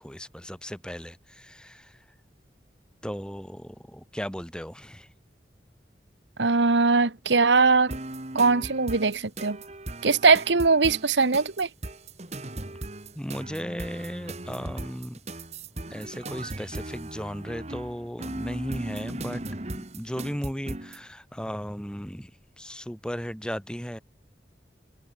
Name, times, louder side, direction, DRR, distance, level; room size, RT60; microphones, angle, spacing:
voice 1, 0.0-2.0 3.0-5.1 13.2-15.2 15.9-19.4 19.7-22.3 22.6-24.0, equal, 5° left, 3.8 m, -36 dB
voice 2, 6.4-8.0 8.3-9.6 10.0-11.7, right 4 dB, 85° right, 1.2 m, -21 dB
sound 1, 7.9-21.0, right 2 dB, 40° right, 1.8 m, -38 dB
head